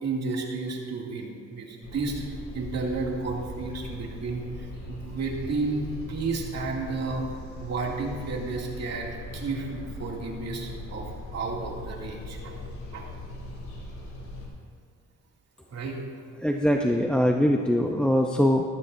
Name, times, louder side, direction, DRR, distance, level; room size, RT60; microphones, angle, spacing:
voice 1, 0.0-2.2 2.5-7.3 7.6-12.6 12.9-13.1 15.7-16.0, right 3 dB, 60° right, -2 dB, 2.7 m, -32 dB
sound 1, 1.8-14.5, left 2 dB, 85° left, 3.4 m, -40 dB
voice 2, 16.4-18.6, equal, 5° left, 2 dB, 0.7 m, -22 dB
14.5 x 14.0 x 2.7 m, 2.3 s
cardioid pair, 90°, 30 cm